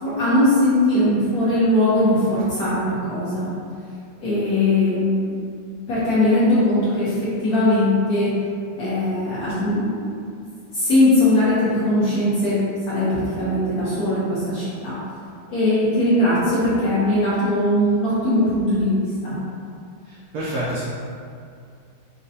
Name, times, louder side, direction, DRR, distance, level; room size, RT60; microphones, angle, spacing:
voice 1, 0.0-3.5 4.2-5.3 5.9-8.3 8.8-10.2 10.7-12.6 12.9-14.9 15.5-19.3, left 1 dB, 60° left, -10 dB, 1.1 m, -20 dB
voice 2, 20.1-20.8, right 1 dB, 80° right, -8 dB, 0.8 m, -28 dB
5.1 x 2.2 x 2.6 m, 2.3 s
omnidirectional pair, 2.3 m